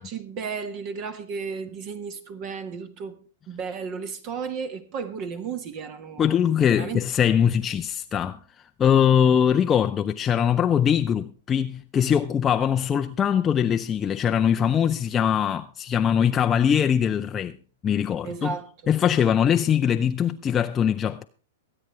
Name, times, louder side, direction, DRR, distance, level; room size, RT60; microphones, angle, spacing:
voice 1, 0.0-3.2 3.5-6.4 6.7-7.0 18.2-18.7, right 6 dB, 40° right, 1.5 m, -33 dB
voice 2, 6.2-8.4 8.8-17.5 17.8-18.5 18.9-21.2, left 8 dB, 25° left, 0.6 m, -22 dB
23.5 x 9.0 x 3.2 m
figure-of-eight pair, 105°, 0 cm